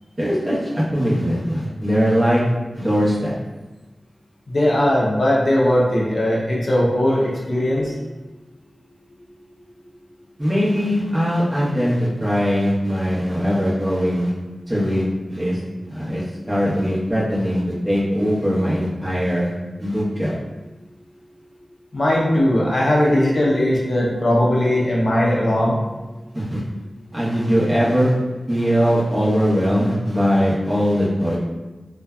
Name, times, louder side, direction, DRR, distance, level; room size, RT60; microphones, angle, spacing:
voice 1, 0.2-2.4 2.7-3.3 10.4-14.3 14.7-15.6 15.9-19.5 19.8-20.3 26.3-26.6 27.1-28.1 28.5-31.4, equal, 25° right, -7 dB, 0.8 m, -20 dB
voice 2, 4.5-7.9 21.9-25.8, left 1 dB, 60° left, -4 dB, 0.5 m, -19 dB
2.5 x 2.1 x 2.3 m, 1.1 s
cardioid pair, 55°, 0 cm